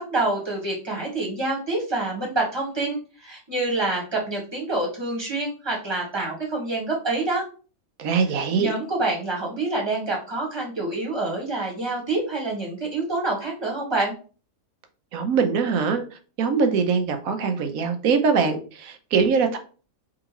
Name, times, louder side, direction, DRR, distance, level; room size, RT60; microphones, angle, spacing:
voice 1, 0.0-7.4 8.5-14.1, right 2 dB, 20° right, -1 dB, 1.7 m, -27 dB
voice 2, 8.0-8.7 15.1-19.6, right 5 dB, 75° right, 7 dB, 1.2 m, -22 dB
4.6 x 3.7 x 3.0 m, 0.37 s
omnidirectional pair, 1.5 m